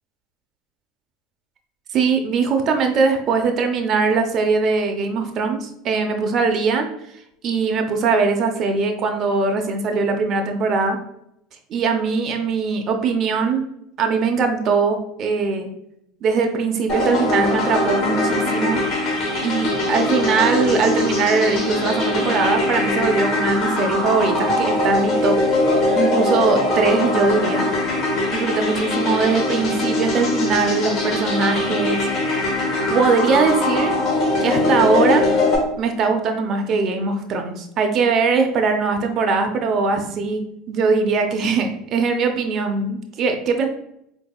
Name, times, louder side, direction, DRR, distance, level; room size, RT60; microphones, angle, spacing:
voice 1, 1.9-6.9 7.4-11.0 11.7-13.6 14.0-15.7 16.2-18.8 19.4-25.4 25.9-27.7 28.3-32.5 32.9-34.0 34.4-35.3 35.8-40.4 40.7-43.7, right 4 dB, 45° right, 5 dB, 0.6 m, -21 dB
sound 1, 16.9-35.6, left 2 dB, 50° left, 1.1 m, -21 dB
4.0 x 2.7 x 2.2 m, 0.77 s
hypercardioid pair, 85°, 0 cm